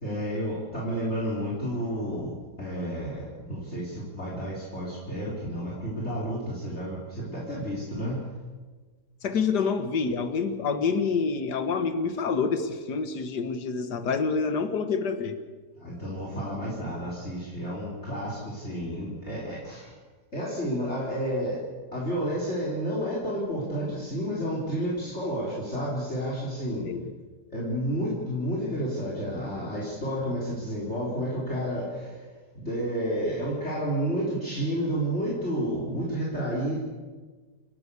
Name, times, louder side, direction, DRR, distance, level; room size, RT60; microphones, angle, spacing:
voice 1, 0.0-8.2 15.8-20.0 20.3-21.6 21.9-26.9 27.5-32.3 32.5-36.8, equal, 40° left, -5 dB, 4.0 m, -31 dB
voice 2, 9.2-15.4 26.9-27.1, left 5 dB, 80° left, 9 dB, 2.0 m, -27 dB
28.5 x 11.5 x 8.3 m, 1.4 s
omnidirectional pair, 1.8 m